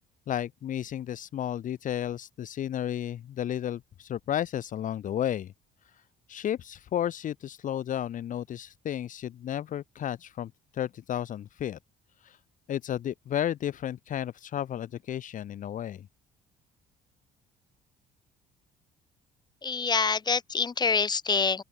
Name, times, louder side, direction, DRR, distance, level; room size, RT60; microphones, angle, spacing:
voice 1, 0.3-5.5 6.3-11.8 12.2-12.4 12.7-16.1, left 10 dB, 50° left, 0.9 m, -33 dB
voice 2, 19.6-21.6, left 5 dB, 25° left, 1.5 m, -26 dB
open air
cardioid pair, 110°, 17 cm